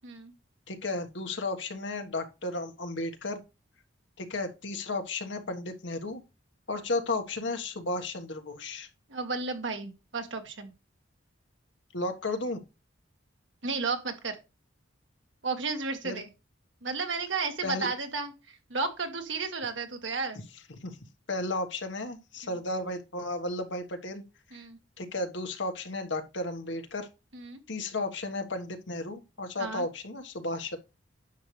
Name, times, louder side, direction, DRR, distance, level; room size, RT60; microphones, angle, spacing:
voice 1, 0.7-3.4 4.2-6.2 6.7-8.9 11.9-12.6 16.0-16.2 17.6-17.9 20.7-21.0 21.3-24.2 25.0-27.1 27.7-30.8, left 2 dB, 70° left, 1.5 m, -33 dB
voice 2, 9.1-10.7 13.6-14.4 15.4-16.3 16.8-20.4 24.5-24.8 27.3-27.6 29.6-29.9, right 4 dB, 75° right, 1.9 m, -33 dB
10.0 x 6.5 x 3.3 m
head